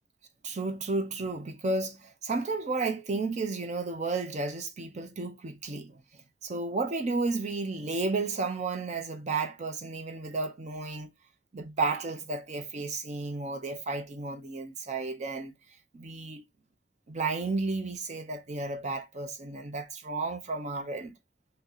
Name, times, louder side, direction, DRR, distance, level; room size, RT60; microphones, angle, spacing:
voice 1, 0.4-6.0 6.4-11.1 11.5-15.5 15.9-16.4 17.1-21.1, right 3 dB, 40° right, 0.5 m, -32 dB
2.8 x 2.7 x 3.8 m
head